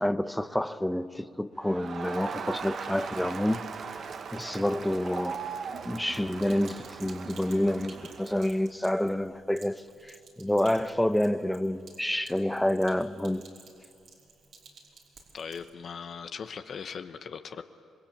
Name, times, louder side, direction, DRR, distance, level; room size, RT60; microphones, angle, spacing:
voice 1, 0.0-3.6 4.0-5.5 5.8-13.5, left 1 dB, 5° left, 0.9 m, -28 dB
Crowd, 1.6-8.6, right 6 dB, 50° right, 1.1 m, -39 dB
Sink (filling or washing), 6.4-15.7, right 4 dB, 70° right, 5.0 m, -54 dB
voice 2, 15.3-17.6, left 6 dB, 55° left, 1.0 m, -39 dB
27.0 x 21.5 x 8.7 m
cardioid pair, 90°, 0 cm